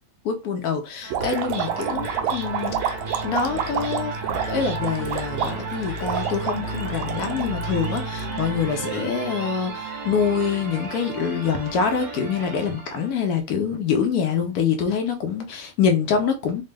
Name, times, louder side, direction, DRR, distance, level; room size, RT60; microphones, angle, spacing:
voice 1, 0.2-2.7 3.2-4.2 4.5-16.6, left 6 dB, 70° left, 0.9 m, -25 dB
sound 1, 1.0-13.2, right 3 dB, 65° right, 1.8 m, -33 dB
sound 2, 1.1-8.4, right 9 dB, 90° right, 1.4 m, -29 dB
4.1 x 2.1 x 3.3 m
omnidirectional pair, 2.1 m